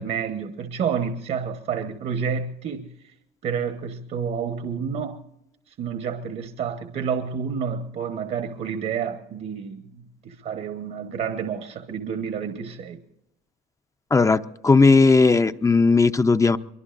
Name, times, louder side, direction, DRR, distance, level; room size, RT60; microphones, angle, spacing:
voice 1, 0.0-2.9 3.4-5.2 5.7-13.0, right 7 dB, 55° right, 1.1 m, -29 dB
voice 2, 14.1-16.6, left 4 dB, 20° left, 0.5 m, -17 dB
24.0 x 23.5 x 2.5 m
cardioid pair, 110°, 17 cm